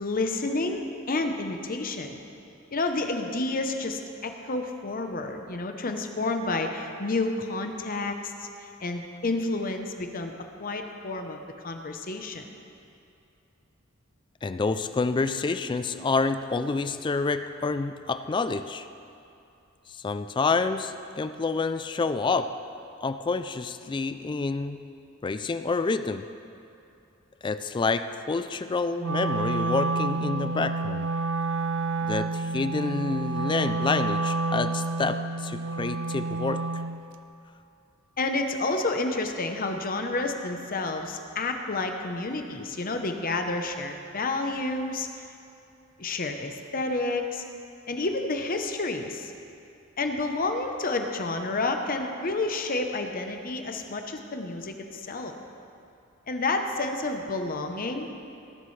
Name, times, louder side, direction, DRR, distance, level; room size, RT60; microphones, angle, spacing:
voice 1, 0.0-2.2 2.7-8.5 8.8-10.3 10.6-12.5 38.2-45.1 46.0-47.4 47.9-49.3 50.0-55.3 56.3-58.1, left 2 dB, 40° left, 5 dB, 0.8 m, -30 dB
voice 2, 14.4-18.9 19.9-22.6 23.0-24.8 25.2-26.3 27.4-31.1 32.0-36.8, left 4 dB, 20° left, 11 dB, 0.3 m, -28 dB
Wind instrument woodwind instrument, 29.0-37.0, right 3 dB, 60° right, 0.5 m, -29 dB
19.0 x 11.5 x 3.3 m, 2.6 s
head